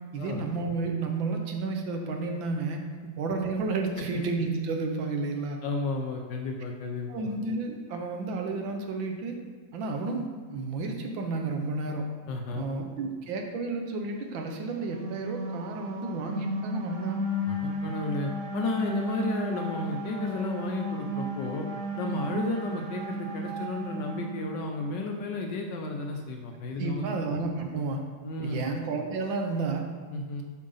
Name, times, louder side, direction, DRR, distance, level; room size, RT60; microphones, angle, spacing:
voice 1, 0.1-2.8 3.2-5.6 7.1-9.4 9.7-12.0 12.6-17.2 26.8-28.0 28.4-29.8, right 3 dB, 70° right, 3 dB, 1.5 m, -31 dB
voice 2, 5.6-7.1 12.3-12.7 17.5-21.7 22.0-27.1 28.2-28.6 30.1-30.4, left 3 dB, 70° left, 2 dB, 1.2 m, -33 dB
sound 1, 14.5-25.0, right 1 dB, 85° right, 0.6 m, -34 dB
7.5 x 4.7 x 5.5 m, 1.4 s
omnidirectional pair, 2.3 m